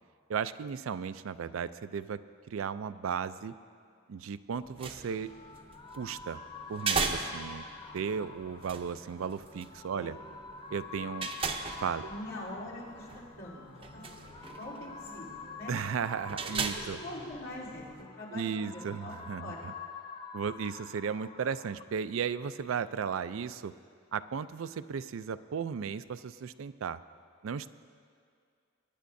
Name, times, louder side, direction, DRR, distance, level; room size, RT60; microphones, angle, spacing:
voice 1, 0.3-2.2 2.5-3.5 4.1-5.3 6.0-6.4 6.7-7.6 7.9-10.1 10.7-11.3 11.8-12.1 15.7-17.0 18.3-19.7 20.3-23.7 24.1-27.0 27.4-27.7, right 6 dB, 80° right, 14 dB, 0.4 m, -35 dB
sound 1, 4.5-18.0, right 4 dB, 25° right, 0.6 m, -39 dB
sound 2, 4.8-21.8, left 5 dB, 20° left, 0.4 m, -47 dB
voice 2, 12.0-13.1 13.4-13.6 13.9-15.7 16.5-19.7, left 1 dB, 90° left, -8 dB, 3.4 m, -44 dB
sound 3, 13.4-16.1 16.4-18.3, left 4 dB, 70° left, 0.6 m, -55 dB
23.5 x 10.0 x 2.6 m, 2.3 s
head